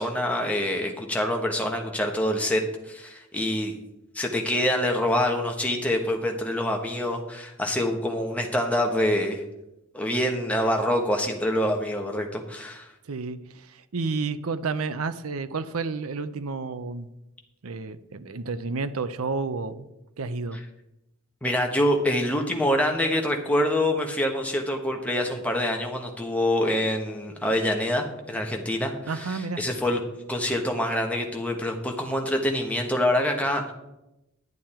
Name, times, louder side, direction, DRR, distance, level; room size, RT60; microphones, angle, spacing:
voice 1, 0.0-3.7 4.1-9.4 9.9-12.9 21.4-30.0 30.3-33.7, left 1 dB, 5° left, 2 dB, 1.3 m, -26 dB
voice 2, 13.1-17.1 17.6-19.9 20.2-20.6 29.1-29.6, right 4 dB, 85° right, 12 dB, 0.6 m, -31 dB
10.5 x 9.2 x 4.4 m, 0.91 s
head